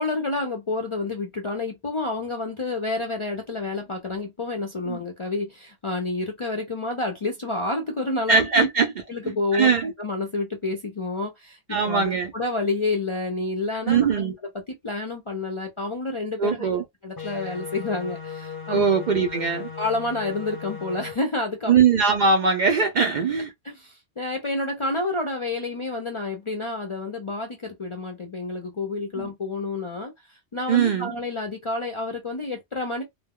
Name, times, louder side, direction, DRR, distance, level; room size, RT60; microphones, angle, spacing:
voice 1, 0.0-8.7 9.1-9.7 10.0-11.6 11.8-14.2 14.8-16.7 17.0-18.9 19.8-21.7 23.6-33.0, left 2 dB, 45° left, 0.4 m, -29 dB
voice 2, 8.3-8.9 9.5-9.9 11.7-12.3 13.9-14.3 16.4-16.8 18.7-19.7 21.7-23.5 29.2-29.3 30.7-31.1, right 5 dB, 55° right, 0.5 m, -21 dB
sound 1, 17.2-21.1, left 7 dB, 25° left, 0.7 m, -36 dB
2.2 x 2.1 x 3.5 m
omnidirectional pair, 1.1 m